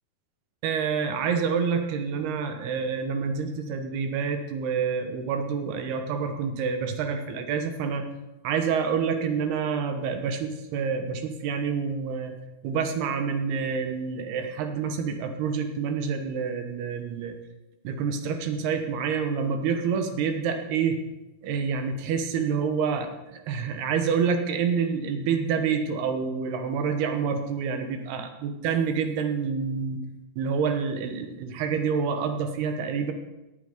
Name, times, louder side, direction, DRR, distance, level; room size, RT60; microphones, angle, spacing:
voice 1, 0.6-8.0 8.4-12.4 12.6-17.4 17.8-21.0 21.4-30.0 30.4-33.1, right 6 dB, 85° right, 6 dB, 3.3 m, -27 dB
17.0 x 9.1 x 5.2 m, 1.0 s
omnidirectional pair, 4.5 m